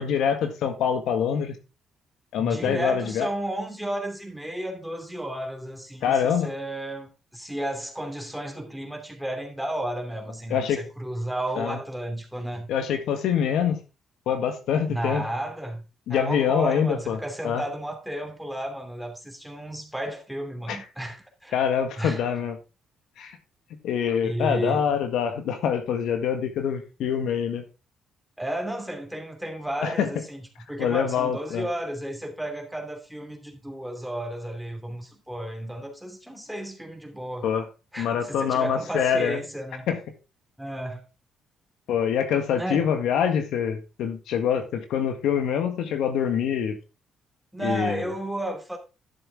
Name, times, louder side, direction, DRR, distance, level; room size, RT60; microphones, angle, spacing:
voice 1, 0.0-1.5 2.3-3.3 6.0-6.5 10.5-10.8 11.6-11.8 12.7-13.8 14.2-15.2 16.1-17.2 17.4-17.6 20.7-20.8 21.5-22.6 23.2-23.3 23.8-27.6 29.8-30.1 30.8-31.6 37.4-37.6 38.0-39.4 39.9-40.0 41.9-46.7 47.6-48.1, left 8 dB, 80° left, 1.8 m, -25 dB
voice 2, 2.4-12.7 14.9-15.8 16.1-21.6 22.0-22.2 24.2-24.8 28.4-37.5 37.9-39.9 40.6-41.1 42.6-42.9 47.5-48.8, right 1 dB, ahead, 2.8 m, -33 dB
12.0 x 6.9 x 3.6 m
cardioid pair, 90°, 0 cm